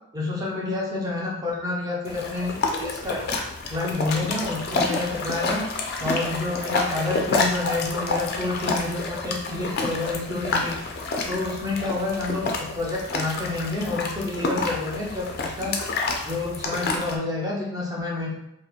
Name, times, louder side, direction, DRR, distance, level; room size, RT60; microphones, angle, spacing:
voice 1, 0.1-3.3 3.7-5.6 6.0-15.8 16.2-18.3, left 3 dB, 15° right, -3 dB, 0.5 m, -29 dB
sound 1, 2.1-17.2, left 3 dB, 50° left, 0.3 m, -29 dB
2.8 x 2.0 x 2.3 m, 0.83 s
head